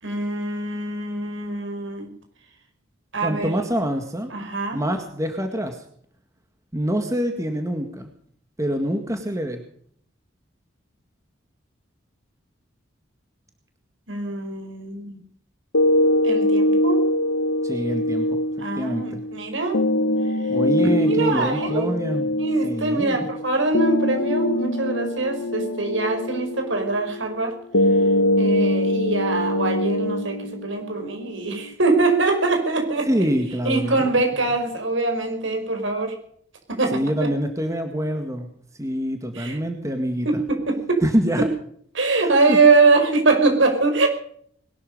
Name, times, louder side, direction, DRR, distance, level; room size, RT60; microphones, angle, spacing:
voice 1, 0.0-2.1 3.1-3.6 4.3-4.8 14.1-15.2 16.2-17.0 18.6-19.8 21.0-21.9 22.4-27.6 28.4-33.1 33.6-36.2 36.7-37.3 39.3-39.6 40.2-41.0 41.9-44.1, right 3 dB, 70° right, 4 dB, 5.2 m, -23 dB
voice 2, 3.2-4.3 4.7-5.8 6.7-8.1 8.6-9.6 17.6-18.4 18.8-19.2 20.5-22.3 22.6-23.3 33.1-34.1 36.9-38.5 38.8-40.4 41.0-41.5 42.2-42.6, equal, 15° right, 5 dB, 1.9 m, -25 dB
sound 1, 15.7-31.7, left 1 dB, 75° left, 1.1 m, -23 dB
21.0 x 12.5 x 5.4 m, 0.63 s
head